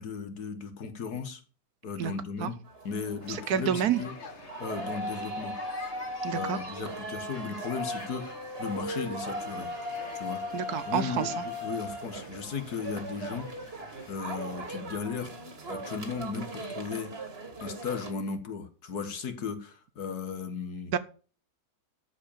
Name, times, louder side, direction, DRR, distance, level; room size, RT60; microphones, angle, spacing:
voice 1, 0.0-1.4 1.8-2.6 2.8-4.1 4.6-5.5 6.3-9.7 10.1-10.4 10.9-13.5 14.1-15.3 15.7-17.2 17.6-20.9, left 5 dB, 65° left, 8 dB, 2.0 m, -36 dB
sound 1, 2.6-18.1, equal, 35° right, 2.1 m, -38 dB
sound 2, 3.2-14.7, left 4 dB, 45° left, 1.7 m, -48 dB
voice 2, 3.3-4.0 6.2-6.6 10.5-11.4 20.9-21.0, right 9 dB, 70° right, 15 dB, 1.2 m, -28 dB
13.0 x 5.2 x 7.2 m, 0.38 s
omnidirectional pair, 1.8 m